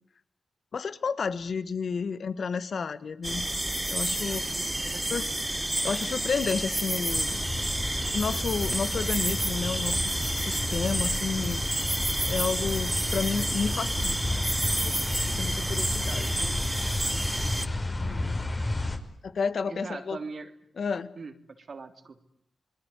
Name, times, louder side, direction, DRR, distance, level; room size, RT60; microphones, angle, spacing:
voice 1, 0.7-3.4 3.9-4.6 5.1-7.5 8.1-12.0 12.3-14.4 14.8-16.6 18.0-18.4 19.2-20.2 20.8-21.1, left 5 dB, 70° left, 14 dB, 1.6 m, -32 dB
sound 1, 3.2-17.7, right 1 dB, 15° right, 1.1 m, -30 dB
voice 2, 4.3-5.3 19.7-20.5 21.1-22.2, right 4 dB, 60° right, 7 dB, 3.1 m, -42 dB
sound 2, 7.1-19.0, left 2 dB, 35° left, 5.4 m, -32 dB
27.5 x 21.0 x 9.8 m, 0.67 s
cardioid pair, 50°, 0 cm